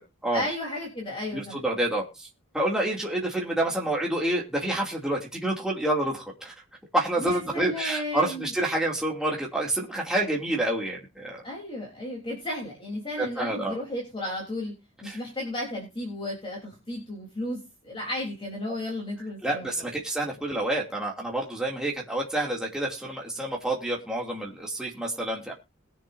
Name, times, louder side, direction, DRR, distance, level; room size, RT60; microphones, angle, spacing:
voice 1, 0.3-1.6 7.2-8.5 11.4-14.7 15.0-19.7, left 1 dB, 25° left, -2 dB, 3.6 m, -34 dB
voice 2, 1.3-2.3 2.5-6.5 6.9-11.4 13.2-13.8 15.0-15.2 18.7-18.8 19.4-25.5, right 1 dB, 5° right, -3 dB, 2.6 m, -28 dB
21.5 x 7.1 x 2.7 m, 0.28 s
head